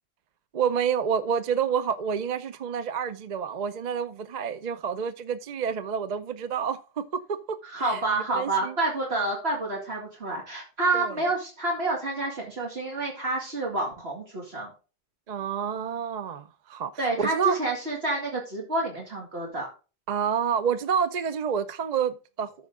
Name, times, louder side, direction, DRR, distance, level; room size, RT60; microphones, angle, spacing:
voice 1, 0.5-7.6 7.9-8.0 8.3-8.8 10.9-11.1 15.3-16.9 17.2-17.6 20.1-22.5, right 7 dB, 50° right, 0.6 m, -28 dB
voice 2, 7.6-14.7 17.0-19.7, right 2 dB, 70° right, 2.5 m, -28 dB
13.5 x 5.2 x 3.7 m
omnidirectional pair, 1.1 m